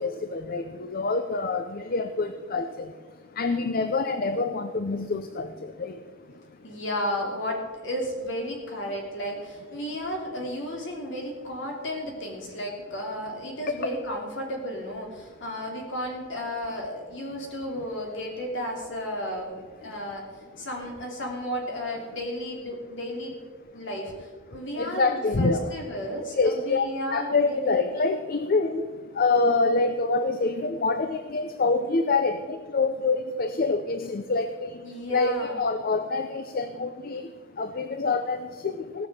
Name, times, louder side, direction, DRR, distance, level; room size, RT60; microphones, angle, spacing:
voice 1, 0.0-6.8 13.7-13.9 19.8-19.9 24.5-25.7 26.3-39.1, left 3 dB, 50° left, 9 dB, 0.6 m, -27 dB
voice 2, 6.6-20.2 20.6-23.4 23.7-27.8 34.8-35.6, equal, 65° left, 0 dB, 3.1 m, -33 dB
17.0 x 6.2 x 7.6 m, 1.5 s
head